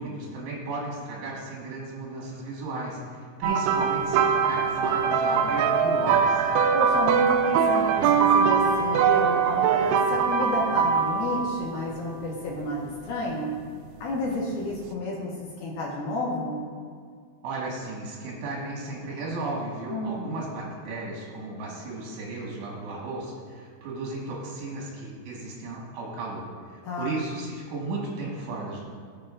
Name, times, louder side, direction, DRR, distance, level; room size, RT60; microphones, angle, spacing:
voice 1, 0.0-6.5 17.4-28.8, right 2 dB, 70° right, -3 dB, 3.7 m, -34 dB
sound 1, 3.4-11.7 12.6-12.8 14.6-14.7, right 6 dB, 90° right, 2.3 m, -22 dB
voice 2, 6.7-13.5 14.0-15.3 15.6-16.6 19.9-20.4 26.8-27.2, left 2 dB, 70° left, -4 dB, 2.8 m, -31 dB
16.0 x 7.5 x 2.4 m, 2.1 s
omnidirectional pair, 5.3 m